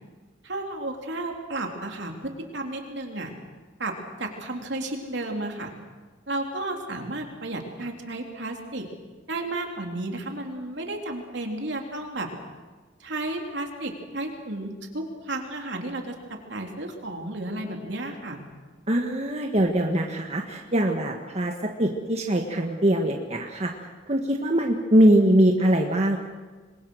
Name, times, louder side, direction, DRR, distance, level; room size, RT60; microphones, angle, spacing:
voice 1, 0.4-3.3 3.8-3.9 4.2-5.7 6.3-8.9 9.3-12.3 13.0-18.4, right 2 dB, 65° right, 2 dB, 3.7 m, -33 dB
voice 2, 18.9-21.5 21.8-23.7 24.1-26.2, right 1 dB, 35° right, 2 dB, 1.7 m, -22 dB
27.5 x 22.5 x 6.5 m, 1.4 s
head